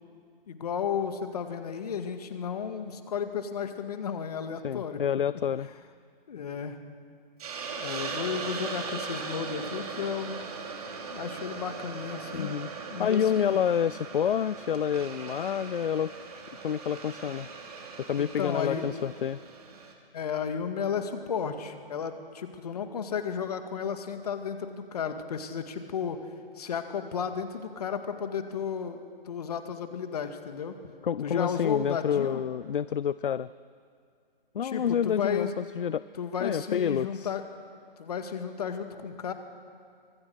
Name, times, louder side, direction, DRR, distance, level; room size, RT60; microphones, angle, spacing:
voice 1, 0.5-5.0 6.3-6.8 7.7-10.5 11.1-12.5 12.9-13.6 17.2-17.3 18.2-19.1 20.1-26.2 26.6-30.8 31.2-32.4 34.6-35.5 36.2-37.4 38.0-39.3, left 7 dB, 40° left, 7 dB, 2.0 m, -33 dB
voice 2, 4.6-5.7 12.3-12.7 13.0-16.1 16.6-17.5 18.0-19.4 31.0-33.5 34.5-36.0 36.4-37.3, left 8 dB, 65° left, 18 dB, 0.5 m, -28 dB
Hiss, 7.4-19.9, right 4 dB, 40° right, 2.8 m, -39 dB
25.5 x 19.5 x 6.4 m, 2.3 s
figure-of-eight pair, 145°, 29 cm